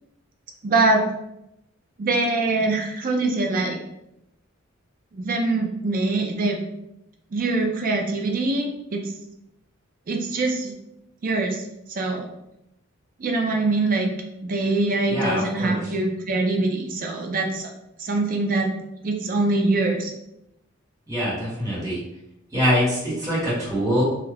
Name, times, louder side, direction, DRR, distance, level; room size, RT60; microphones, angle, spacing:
voice 1, 0.6-1.0 2.0-3.8 5.1-6.6 7.3-9.0 10.1-10.7 11.2-11.6 11.9-12.3 13.2-14.1 14.4-17.7 18.0-18.7 19.0-20.1, right 2 dB, 40° right, 2 dB, 0.4 m, -23 dB
voice 2, 15.1-15.9 21.1-22.0 22.5-24.0, equal, 15° right, -8 dB, 1.1 m, -24 dB
2.4 x 2.1 x 3.2 m, 0.84 s
head